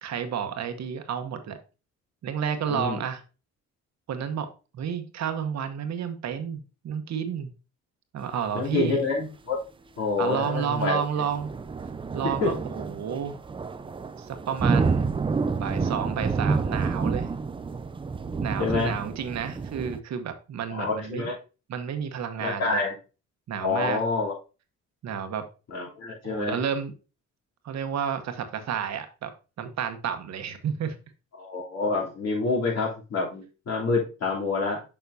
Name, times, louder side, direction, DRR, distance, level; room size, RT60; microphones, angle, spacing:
voice 1, 0.0-1.6 2.2-3.2 4.1-4.5 4.7-7.5 8.1-9.0 10.2-11.5 12.1-13.4 14.2-15.1 15.5-17.3 18.4-21.3 21.7-22.8 23.5-24.0 25.0-25.4 26.2-26.9 27.6-29.3 29.6-30.9, right 7 dB, 60° right, 8 dB, 1.0 m, -31 dB
voice 2, 2.7-3.0 8.5-9.6 10.0-11.0 12.4-12.5 18.6-18.9 20.7-21.4 22.4-22.9 23.6-24.3 25.7-26.6 31.4-34.8, left 3 dB, 55° left, -3 dB, 3.1 m, -27 dB
sound 1, 11.2-20.0, right 4 dB, 20° right, 0.4 m, -29 dB
6.9 x 5.6 x 2.7 m, 0.32 s
cardioid pair, 90°, 30 cm